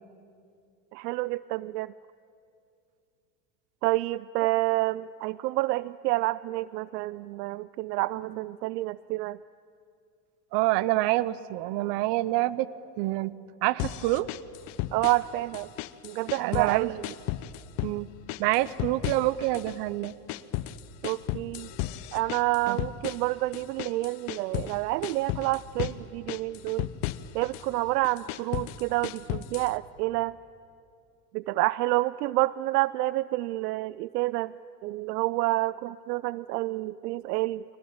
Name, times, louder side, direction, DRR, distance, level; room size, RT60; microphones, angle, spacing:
voice 1, 0.9-1.9 3.8-9.4 14.9-15.7 16.0-17.0 21.0-21.7 22.1-26.9 27.3-30.4 31.3-34.5 34.8-37.6, right 18 dB, 80° right, 19 dB, 0.5 m, -28 dB
voice 2, 10.5-12.7 13.0-13.3 13.6-14.3 16.4-16.9 17.8-18.1 18.4-20.1 22.7-22.8, right 17 dB, 55° right, 19 dB, 0.9 m, -27 dB
sound 1, 13.8-15.3 15.5-16.8 17.0-18.0 18.3-19.8 20.0-24.8 25.0-26.0 26.3-27.7 28.0-29.7, left 15 dB, 60° left, 1.0 m, -34 dB
24.0 x 18.5 x 8.8 m, 2.5 s
hypercardioid pair, 85°, 48 cm